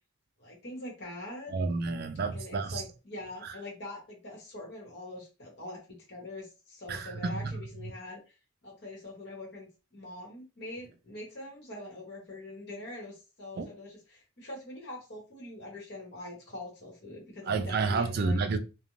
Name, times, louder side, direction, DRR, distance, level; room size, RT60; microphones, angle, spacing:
voice 1, 0.4-1.5 2.3-5.8 6.1-8.3 8.6-18.4, left 2 dB, 55° left, 1.1 m, -43 dB
voice 2, 1.5-2.8 3.4-3.6 6.9-7.6 13.6-13.7 17.5-18.6, right 4 dB, 50° right, 0.3 m, -30 dB
2.5 x 2.1 x 3.0 m
head